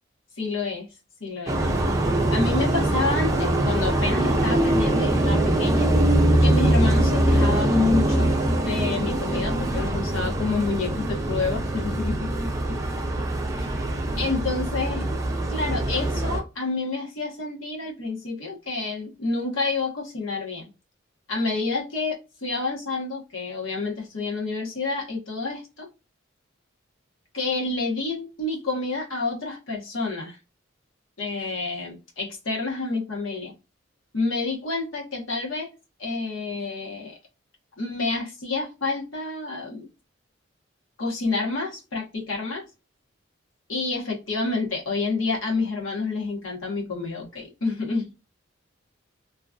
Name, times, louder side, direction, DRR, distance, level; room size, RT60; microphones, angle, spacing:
voice 1, 0.4-0.9 1.2-1.6 2.3-5.9 6.4-12.3 13.6-13.7 14.2-15.1 15.5-20.7 21.3-25.9 27.3-30.4 31.2-33.5 34.1-35.7 36.0-37.2 37.8-39.9 41.0-42.6 43.7-48.1, left 3 dB, 85° left, 1.2 m, -28 dB
sound 1, 1.5-16.4, right 1 dB, 15° right, 0.5 m, -23 dB
3.0 x 2.4 x 2.4 m
head